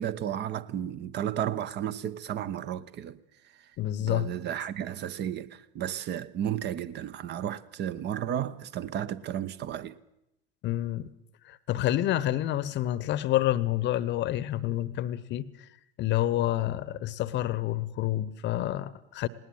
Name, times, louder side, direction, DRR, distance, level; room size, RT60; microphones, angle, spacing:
voice 1, 0.0-3.2 4.0-10.0, right 10 dB, 35° right, 1.1 m, -33 dB
voice 2, 3.8-4.3 10.6-11.1 11.4-15.7 16.0-19.3, left 13 dB, 40° left, 1.0 m, -28 dB
20.0 x 19.0 x 7.8 m
figure-of-eight pair, 80°, 29 cm